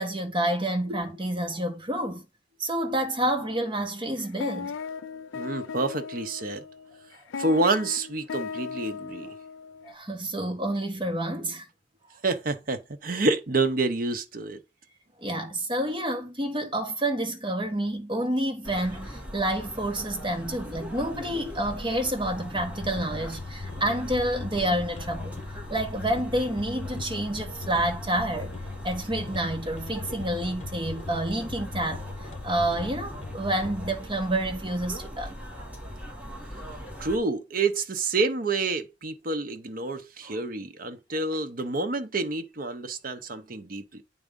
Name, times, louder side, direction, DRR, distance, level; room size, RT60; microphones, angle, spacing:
voice 1, 0.0-2.3 2.6-4.7 9.8-11.6 15.2-25.4 25.7-28.5 28.8-32.0 32.4-35.4 40.2-40.4, right 1 dB, 25° right, 1.5 m, -29 dB
sound 1, 3.4-3.8 4.2-9.9, left 6 dB, 85° left, 0.5 m, -37 dB
voice 2, 5.3-6.6 7.4-9.3 12.2-14.6 37.0-44.0, right 3 dB, 45° right, 0.8 m, -28 dB
sound 2, 18.6-37.2, equal, 10° right, 1.6 m, -40 dB
sound 3, 22.3-34.0, left 4 dB, 35° left, 0.9 m, -40 dB
8.5 x 3.6 x 5.2 m
head